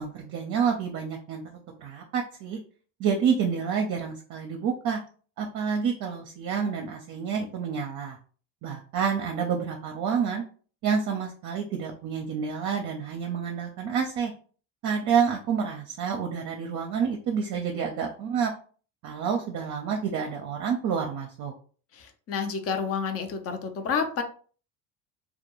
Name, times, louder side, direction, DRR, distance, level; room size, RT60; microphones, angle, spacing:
voice 1, 0.0-1.4 1.8-2.6 3.0-5.0 5.4-8.2 8.6-10.4 10.8-14.3 14.8-18.5 19.0-21.5, right 6 dB, 50° right, 2 dB, 0.5 m, -28 dB
voice 2, 21.9-24.2, left 6 dB, 40° left, 7 dB, 0.6 m, -29 dB
2.3 x 2.2 x 2.9 m, 0.41 s
supercardioid pair, 95°, 38 cm